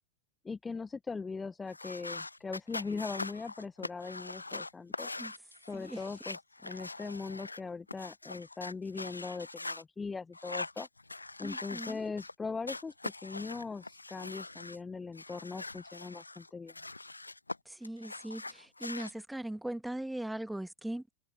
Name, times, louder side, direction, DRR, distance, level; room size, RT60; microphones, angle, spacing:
voice 1, 0.4-5.1 5.7-10.9 11.4-16.7, left 4 dB, 15° left, 1.2 m, -40 dB
sound 1, 1.7-9.8 10.3-12.3 12.6-14.8 15.1-17.6 17.8-19.1, left 2 dB, 80° left, 1.2 m, -42 dB
voice 2, 11.4-12.0 17.7-21.0, right 1 dB, 5° right, 2.1 m, -39 dB
figure-of-eight pair, 90°, 0 cm